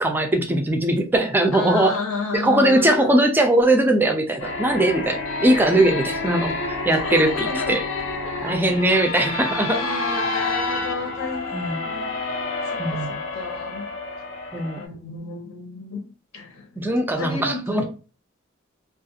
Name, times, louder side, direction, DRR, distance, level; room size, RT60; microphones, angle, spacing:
voice 1, 0.0-1.9 2.3-6.5 6.9-7.8 8.4-9.8 11.5-11.8 12.8-13.2 14.5-14.8 16.8-17.9, right 1 dB, 10° right, 0.3 m, -20 dB
voice 2, 1.5-3.2 6.9-7.8 8.2-8.8 9.7-12.2 12.6-13.9 14.7-17.9, left 4 dB, 85° left, 0.9 m, -32 dB
sound 1, 4.4-14.8, left 3 dB, 65° left, 0.5 m, -29 dB
2.4 x 2.4 x 2.7 m
head